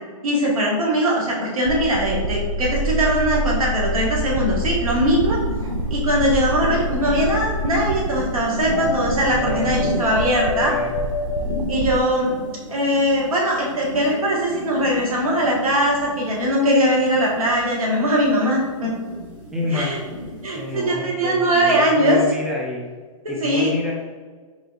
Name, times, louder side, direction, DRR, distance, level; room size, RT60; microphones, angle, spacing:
voice 1, 0.2-5.4 5.9-10.7 11.7-18.9 19.7-20.0 20.4-22.2 23.2-23.7, equal, 85° right, -3 dB, 1.2 m, -21 dB
sound 1, 1.6-12.0, right 1 dB, 65° right, 0.5 m, -27 dB
sound 2, 4.8-20.9, equal, 25° right, 1.2 m, -34 dB
sound 3, 6.5-7.2 8.7-12.5, left 2 dB, 45° left, 1.0 m, -29 dB
voice 2, 9.3-10.0 10.4-10.9 19.5-19.9 20.5-22.8 23.3-23.9, left 2 dB, 5° right, -2 dB, 0.5 m, -28 dB
3.8 x 3.4 x 2.4 m, 1.5 s
hypercardioid pair, 125°, 18 cm